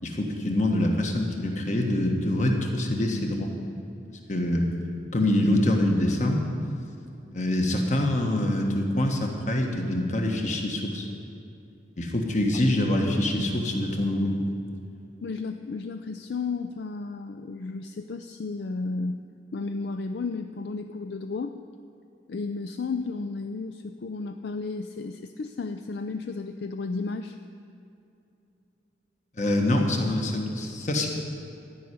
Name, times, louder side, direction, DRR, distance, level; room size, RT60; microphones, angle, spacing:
voice 1, 0.0-3.5 4.3-4.7 5.1-6.4 7.3-11.1 12.0-14.3 29.4-31.1, left 1 dB, 40° left, 2 dB, 1.4 m, -25 dB
voice 2, 15.2-19.2 19.5-21.5 22.3-27.4, left 3 dB, 60° left, 7 dB, 0.4 m, -33 dB
13.0 x 5.6 x 9.3 m, 2.7 s
head